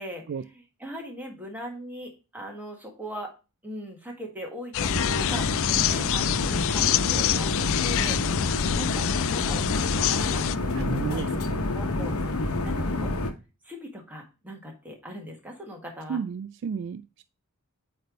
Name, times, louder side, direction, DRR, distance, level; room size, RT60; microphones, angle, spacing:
voice 1, 0.0-3.3 3.6-8.2 8.8-11.4 11.7-12.2 12.4-13.1 13.6-16.2, equal, 10° right, 1 dB, 1.7 m, -40 dB
sound 1, 4.7-10.6, left 12 dB, 65° left, 0.3 m, -27 dB
sound 2, 4.8-13.3, left 2 dB, 90° left, 1.0 m, -28 dB
voice 2, 10.7-11.6 16.1-17.2, right 6 dB, 55° right, 13 dB, 0.3 m, -33 dB
8.5 x 3.4 x 3.9 m, 0.29 s
head